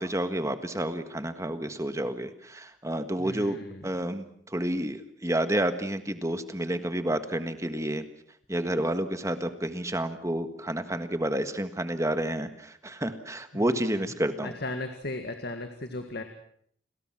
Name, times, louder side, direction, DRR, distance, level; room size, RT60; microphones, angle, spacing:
voice 1, 0.0-3.6 3.8-8.0 8.5-14.5, right 1 dB, 15° right, 9 dB, 1.6 m, -30 dB
voice 2, 3.2-3.8 13.5-13.7 14.4-16.2, left 2 dB, 55° left, 6 dB, 1.9 m, -36 dB
30.0 x 21.0 x 6.1 m, 0.64 s
head